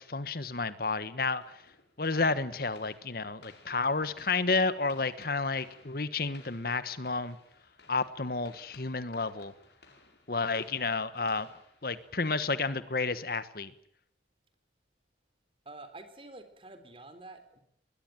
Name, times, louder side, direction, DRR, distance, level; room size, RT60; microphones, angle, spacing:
voice 1, 0.0-1.6 2.0-7.4 7.9-9.5 10.3-11.5 11.8-13.7, left 3 dB, 55° left, 14 dB, 1.3 m, -31 dB
sound 1, 1.4-12.7, left 3 dB, 70° left, 6.0 m, -59 dB
voice 2, 15.7-17.6, right 2 dB, 30° right, 10 dB, 3.8 m, -48 dB
21.5 x 21.0 x 9.1 m, 0.70 s
head